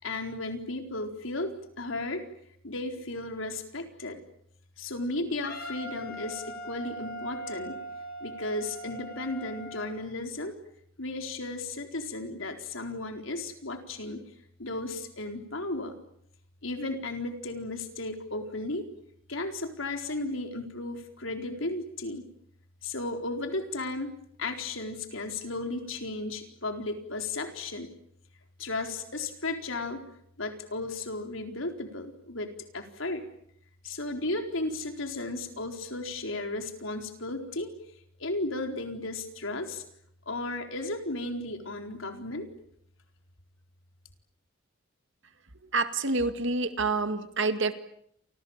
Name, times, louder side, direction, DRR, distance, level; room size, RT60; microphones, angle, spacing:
voice 1, 0.0-2.3 2.6-4.2 4.8-7.8 8.2-10.6 11.0-14.2 14.6-16.0 16.6-18.9 19.3-22.2 22.8-24.1 24.4-27.9 28.6-30.0 30.4-33.2 33.8-37.7 38.2-39.8 40.3-42.5, left 2 dB, 75° left, 5 dB, 4.3 m, -34 dB
Wind instrument woodwind instrument, 5.4-9.9, right 1 dB, 50° left, 6.4 m, -40 dB
voice 2, 45.7-47.7, right 3 dB, 65° right, 9 dB, 2.1 m, -27 dB
30.0 x 26.5 x 7.4 m, 0.71 s
head